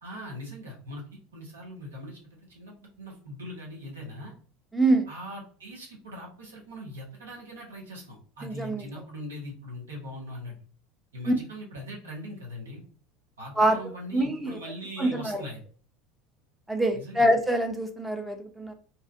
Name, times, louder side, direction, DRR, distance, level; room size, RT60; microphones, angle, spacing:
voice 1, 0.0-4.3 5.1-10.6 11.1-12.8 13.4-15.6 16.9-17.3, equal, 85° right, -2 dB, 1.0 m, -41 dB
voice 2, 4.7-5.1 8.4-8.9 11.3-11.4 13.6-13.8 14.1-14.6 15.0-15.4 16.7-18.7, right 1 dB, 10° right, 4 dB, 0.6 m, -25 dB
2.8 x 2.4 x 2.5 m, 0.43 s
hypercardioid pair, 80°, 0 cm